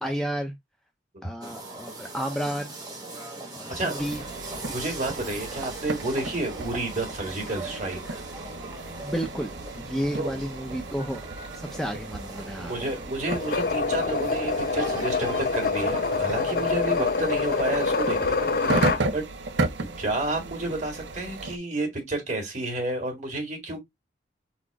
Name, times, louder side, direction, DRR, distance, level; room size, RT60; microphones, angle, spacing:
voice 1, 0.0-0.5 1.2-2.8 3.5-4.2 9.0-11.2 11.5-12.7, equal, 5° left, 0.5 m, -31 dB
sound 1, 1.4-18.2, right 2 dB, 20° right, 1.3 m, -40 dB
voice 2, 3.7-4.0 4.7-8.0 10.2-10.3 12.6-19.3 20.0-23.8, right 2 dB, 45° right, 2.0 m, -30 dB
sound 2, 4.0-21.6, right 2 dB, 90° right, 0.6 m, -34 dB
sound 3, 13.3-19.0, left 4 dB, 55° left, 0.6 m, -26 dB
4.1 x 2.5 x 4.6 m
head